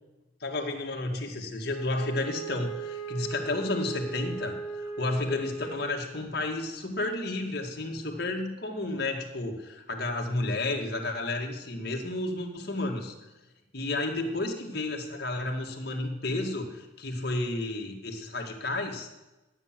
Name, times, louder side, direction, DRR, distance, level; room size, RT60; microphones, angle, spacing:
voice 1, 0.4-13.1 13.7-19.1, left 2 dB, 55° left, 1 dB, 2.1 m, -32 dB
Wind instrument woodwind instrument, 1.7-6.3, right 4 dB, 30° left, 2.0 m, -38 dB
12.5 x 9.0 x 7.5 m, 1.1 s
head